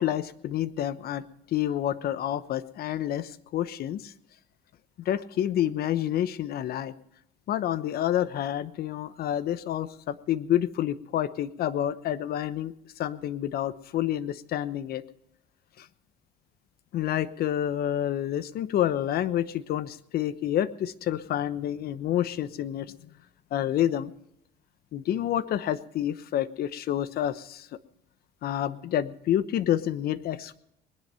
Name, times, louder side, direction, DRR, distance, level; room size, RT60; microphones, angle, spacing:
voice 1, 0.0-4.1 5.0-6.9 7.5-15.0 15.8-15.9 16.9-22.9 23.5-24.1 24.9-27.7 28.4-30.6, left 11 dB, 65° left, 14 dB, 0.9 m, -28 dB
20.5 x 11.0 x 5.6 m, 0.78 s
cardioid pair, 110°, 17 cm